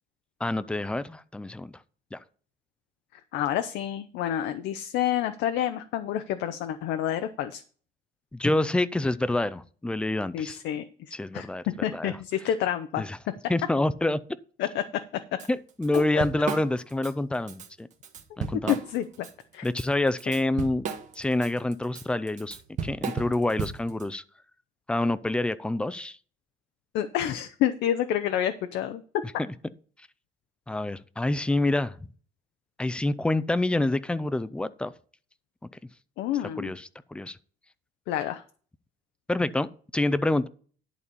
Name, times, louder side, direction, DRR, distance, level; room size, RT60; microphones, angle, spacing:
voice 1, 0.4-1.7 2.1-2.2 8.3-10.6 11.1-11.6 11.9-12.2 13.0-13.2 13.5-14.4 15.5-17.9 18.4-18.8 19.6-20.9 21.2-22.6 22.8-24.2 24.9-26.2 30.7-32.1 32.8-34.9 36.6-37.4 39.3-40.5, left 2 dB, 5° left, 16 dB, 0.3 m, -27 dB
voice 2, 3.3-7.6 10.3-10.8 11.3-11.5 11.8-13.0 14.6-14.8 15.9-16.2 18.7-19.3 19.5-19.7 26.9-29.0 36.2-36.7 38.1-38.4, left 11 dB, 70° left, 9 dB, 0.7 m, -28 dB
Drum kit / Drum, 15.4-15.5 15.8-17.1 17.5-17.7 18.0-19.3 19.6-24.0, right 6 dB, 40° right, 1.2 m, -35 dB
11.0 x 4.1 x 6.9 m, 0.43 s
cardioid pair, 160°, 18 cm